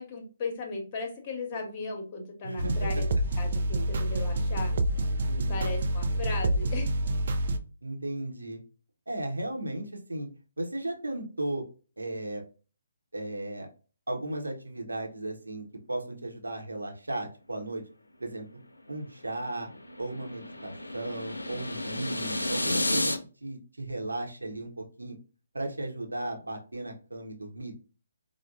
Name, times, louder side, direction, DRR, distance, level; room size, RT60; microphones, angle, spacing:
voice 1, 0.0-3.1 3.4-4.7 5.5-7.0, left 3 dB, 30° left, 2 dB, 1.0 m, -36 dB
voice 2, 2.4-2.9 5.3-5.6 7.8-8.6 9.1-10.3 10.6-11.6 12.0-12.4 13.1-13.7 14.1-17.8 18.2-18.4 18.9-19.7 20.0-23.1 23.4-25.2 25.5-27.8, right 1 dB, 80° right, 2 dB, 0.8 m, -35 dB
sound 1, 2.6-7.6, right 1 dB, 50° right, 0.4 m, -27 dB
sound 2, 18.9-23.2, left 1 dB, 85° left, 0.5 m, -32 dB
4.6 x 2.1 x 2.4 m, 0.36 s
figure-of-eight pair, 140°, 0 cm